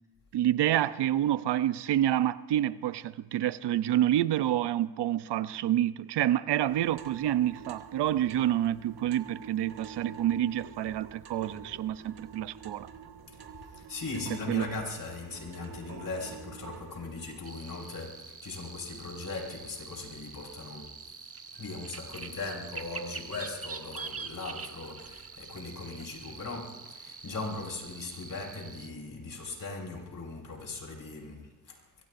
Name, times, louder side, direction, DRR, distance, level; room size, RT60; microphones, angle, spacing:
voice 1, 0.3-12.9 14.5-14.7, right 12 dB, 80° right, 0.7 m, -28 dB
sound 1, 6.7-17.4, right 6 dB, 65° right, 1.6 m, -48 dB
voice 2, 13.3-21.1 21.5-31.9, left 3 dB, 55° left, 5.2 m, -39 dB
sound 2, 17.4-28.9, right 5 dB, 35° right, 1.2 m, -44 dB
24.0 x 23.0 x 2.6 m
cardioid pair, 75°, 40 cm